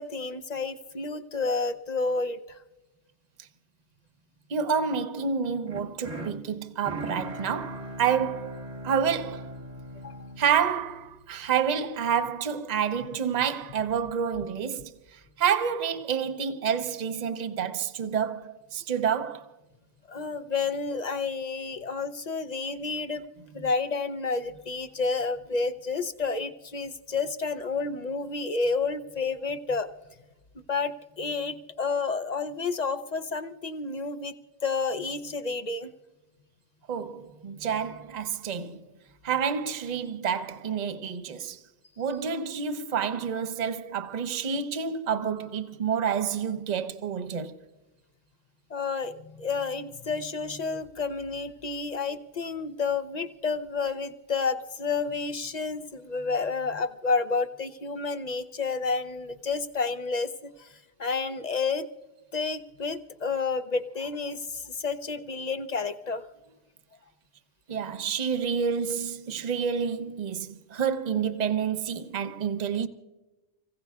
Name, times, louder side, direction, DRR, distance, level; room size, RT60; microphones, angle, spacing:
voice 1, 0.0-2.6 10.0-10.3 20.1-23.2 23.5-29.9 30.7-34.3 34.6-35.9 48.7-60.7 61.0-61.9 62.3-66.2, left 4 dB, 45° left, 0.7 m, -30 dB
voice 2, 4.5-9.5 10.4-19.5 36.9-38.9 39.2-41.6 42.0-47.6 67.7-72.9, right 7 dB, 40° right, 0.8 m, -29 dB
sound 1, 5.7-11.8, right 1 dB, 65° right, 1.7 m, -40 dB
30.0 x 16.0 x 2.4 m
omnidirectional pair, 1.2 m